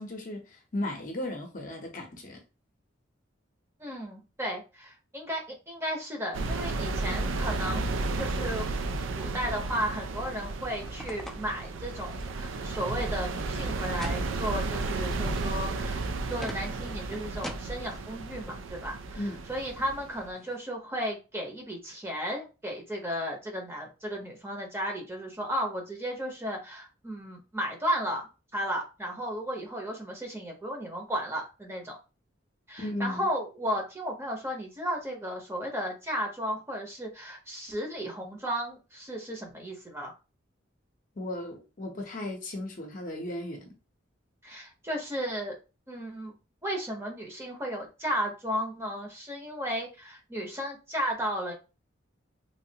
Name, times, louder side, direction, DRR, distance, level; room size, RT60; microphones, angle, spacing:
voice 1, 0.0-2.4 19.2-19.4 32.8-33.3 41.2-43.8, left 1 dB, 45° left, 0.7 m, -36 dB
voice 2, 3.8-8.7 9.2-28.2 28.5-32.0 32.7-40.1 44.4-45.5 45.9-46.3 46.6-51.5, equal, 15° right, 0.7 m, -34 dB
sound 1, 6.3-20.3, right 3 dB, 80° right, 0.4 m, -33 dB
sound 2, 9.9-20.6, left 1 dB, ahead, 0.4 m, -48 dB
3.1 x 2.4 x 2.8 m
head